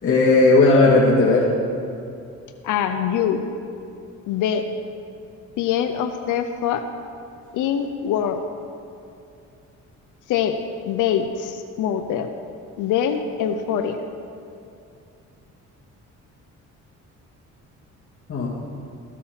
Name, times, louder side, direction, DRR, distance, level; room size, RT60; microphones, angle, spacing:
voice 1, 0.0-1.5 18.3-18.5, left 3 dB, 45° left, -7 dB, 2.1 m, -15 dB
voice 2, 2.6-3.5 4.3-4.6 5.6-6.8 7.5-8.4 10.3-10.6 10.8-12.3 12.8-14.0, left 9 dB, 85° left, 7 dB, 0.7 m, -23 dB
14.0 x 8.4 x 5.7 m, 2.5 s
cardioid pair, 90°, 30 cm